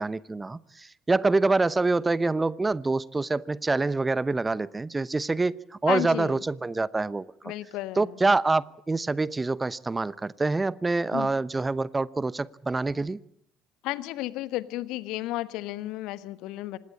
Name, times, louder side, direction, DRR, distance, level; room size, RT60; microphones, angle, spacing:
voice 1, 0.0-7.5 8.0-13.2, right 3 dB, 20° right, 0.9 m, -26 dB
voice 2, 5.9-6.4 7.4-8.2 11.1-11.3 13.8-16.8, left 16 dB, 60° left, 1.3 m, -33 dB
26.0 x 19.5 x 8.6 m
figure-of-eight pair, 55°, 0 cm